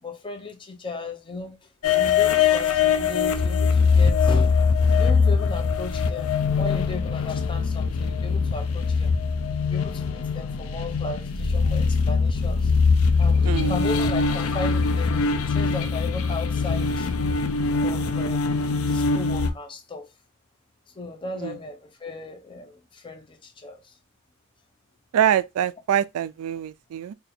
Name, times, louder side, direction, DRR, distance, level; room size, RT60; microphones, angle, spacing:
voice 1, 0.0-1.6 1.9-4.6 4.9-9.1 9.6-12.7 13.2-17.1 17.8-18.6 18.9-20.1 20.9-23.9, left 3 dB, 25° left, 0.6 m, -36 dB
sound 1, 1.8-19.5, left 5 dB, 75° left, 0.5 m, -22 dB
voice 2, 25.1-27.1, right 10 dB, 80° right, 0.3 m, -24 dB
2.8 x 2.6 x 4.1 m
head